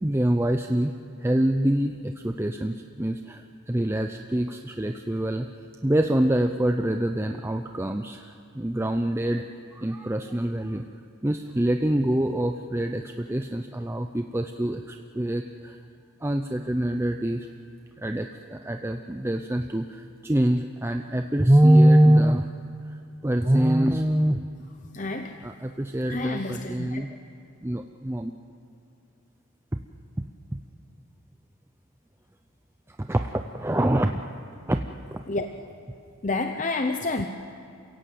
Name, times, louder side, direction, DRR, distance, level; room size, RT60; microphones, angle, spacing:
voice 1, 0.0-0.9 1.2-5.5 5.8-9.5 9.7-10.8 11.2-15.8 16.2-17.5 18.0-22.5 22.9-23.0 23.2-24.4 25.4-27.1 27.6-28.3 29.7-29.8 30.2-30.3 30.5-30.6 32.9-34.1 34.7-34.8 35.1-35.2, right 1 dB, 10° right, 5 dB, 0.5 m, -24 dB
voice 2, 24.9-25.5 26.1-27.0 35.3-35.8 36.2-37.3, left 3 dB, 35° left, 6 dB, 0.7 m, -29 dB
28.5 x 16.5 x 7.7 m, 2.5 s
head